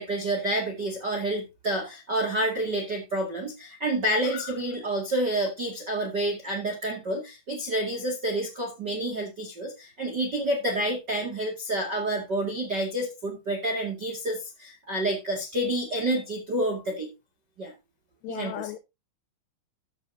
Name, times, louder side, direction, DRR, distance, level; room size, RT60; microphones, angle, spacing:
voice 1, 0.0-17.1 17.6-17.7 18.3-18.7, right 1 dB, 45° right, 1.4 m, -29 dB
voice 2, 18.2-18.8, left 13 dB, 80° left, 2.7 m, -36 dB
14.0 x 9.1 x 2.7 m
omnidirectional pair, 5.3 m